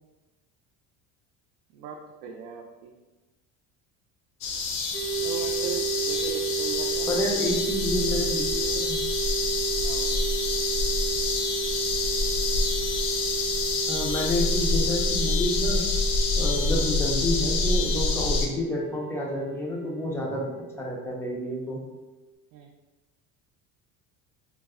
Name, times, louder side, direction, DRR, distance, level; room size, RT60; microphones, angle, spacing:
voice 1, 1.7-2.9 5.2-7.2 9.8-10.4 22.5-22.7, right 6 dB, 85° right, 0 dB, 0.5 m, -39 dB
sound 1, 4.4-18.5, left 3 dB, 70° left, 0.6 m, -27 dB
sound 2, 4.9-22.3, right 6 dB, 30° right, 0.6 m, -33 dB
voice 2, 7.1-9.0 13.9-15.8 16.4-20.5 20.8-21.8, left 1 dB, 10° left, -2 dB, 0.3 m, -29 dB
3.2 x 2.0 x 3.5 m, 1.1 s
cardioid pair, 150°, 35 cm